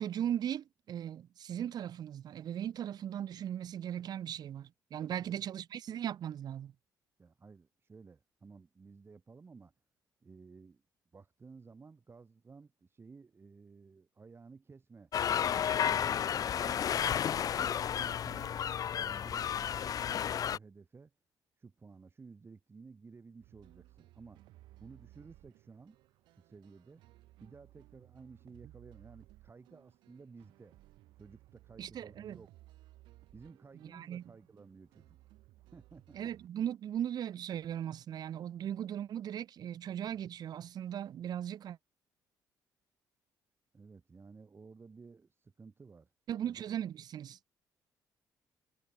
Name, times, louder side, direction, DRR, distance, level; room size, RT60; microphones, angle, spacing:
voice 1, 0.0-6.7 31.8-32.4 33.7-34.2 36.1-41.8 46.3-47.4, right 10 dB, 60° right, 2.0 m, -38 dB
voice 2, 5.1-5.5 7.2-9.7 10.2-10.8 11.1-15.1 15.5-17.3 17.8-21.1 21.6-24.4 24.8-26.0 26.3-27.0 27.4-30.8 31.2-32.5 33.3-35.2 35.7-36.2 43.7-46.1 46.4-46.8, right 4 dB, 30° right, 5.9 m, -55 dB
sound 1, 15.1-20.6, left 9 dB, 50° left, 0.6 m, -32 dB
sound 2, 23.4-36.5, right 17 dB, 85° right, 7.8 m, -60 dB
cardioid pair, 85°, 8 cm